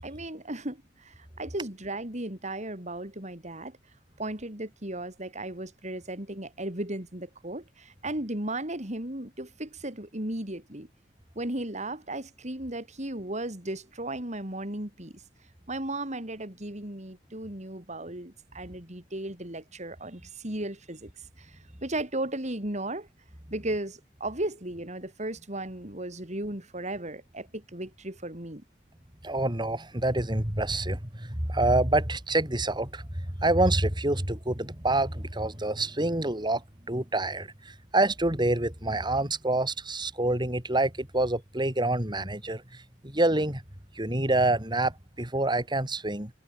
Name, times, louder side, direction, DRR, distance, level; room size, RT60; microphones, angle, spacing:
voice 1, 0.0-3.8 4.2-10.9 11.3-15.2 15.7-23.1 23.5-28.6, right 1 dB, 40° right, 5.1 m, -35 dB
voice 2, 29.2-36.6 36.9-43.6 44.0-46.3, right 2 dB, 25° right, 4.1 m, -27 dB
head